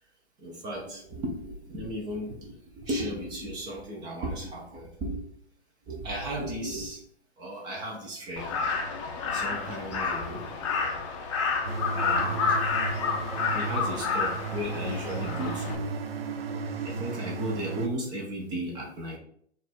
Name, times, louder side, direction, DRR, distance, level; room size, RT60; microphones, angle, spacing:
voice 1, 0.4-5.2 5.9-7.0 7.4-8.5 9.3-10.4 11.9-12.6 13.5-15.8 16.8-19.2, right 1 dB, 15° right, -2 dB, 0.5 m, -35 dB
Crow, 8.4-15.7, left 5 dB, 30° left, 0.6 m, -30 dB
sound 1, 11.7-17.9, right 4 dB, 60° right, 0.6 m, -34 dB
4.1 x 2.5 x 4.1 m, 0.64 s
figure-of-eight pair, 125°, 33 cm